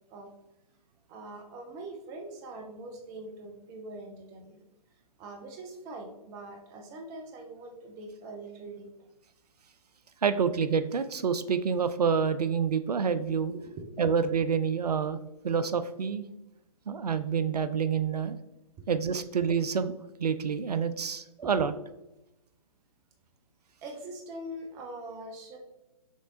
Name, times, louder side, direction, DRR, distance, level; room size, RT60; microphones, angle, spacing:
voice 1, 1.1-4.6 5.2-9.1 13.3-13.8 18.8-19.2 21.6-21.7 23.8-25.6, right 2 dB, 15° right, 2 dB, 0.5 m, -43 dB
voice 2, 10.2-13.5 14.0-15.2 15.4-16.2 16.9-18.4 18.9-19.9 20.2-21.7, right 6 dB, 80° right, 12 dB, 0.4 m, -27 dB
6.4 x 3.2 x 2.6 m, 0.94 s
figure-of-eight pair, 130°, 20 cm